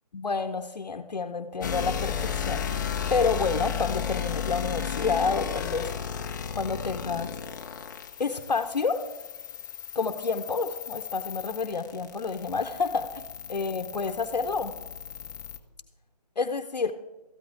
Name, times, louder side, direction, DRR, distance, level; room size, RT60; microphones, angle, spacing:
voice 1, 0.1-5.9 6.5-7.4 8.2-9.0 9.9-13.2 13.5-14.7 16.4-16.9, left 4 dB, 80° left, 7 dB, 0.8 m, -29 dB
sound 1, 1.6-15.6, left 8 dB, 30° left, 0.6 m, -34 dB
13.5 x 11.5 x 3.8 m, 1.2 s
figure-of-eight pair, 155°, 21 cm